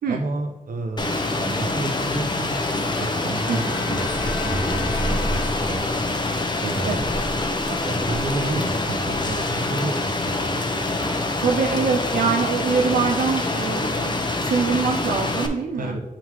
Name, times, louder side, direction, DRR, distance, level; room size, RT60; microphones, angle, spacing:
voice 1, 0.1-5.8 6.6-7.1 7.7-10.1 10.4-10.5 15.8-16.0, right 2 dB, 65° right, 4 dB, 0.8 m, -31 dB
Rain, 1.0-15.5, left 2 dB, 30° left, 0.7 m, -25 dB
sound 1, 2.8-6.0, left 5 dB, 60° left, 1.1 m, -38 dB
voice 2, 3.5-3.9 6.9-7.0 11.4-16.0, right 5 dB, 90° right, 1 dB, 0.4 m, -24 dB
sound 2, 4.0-9.5, equal, 5° right, 0.3 m, -32 dB
7.9 x 3.9 x 3.0 m, 1.1 s
cardioid pair, 70°, 15 cm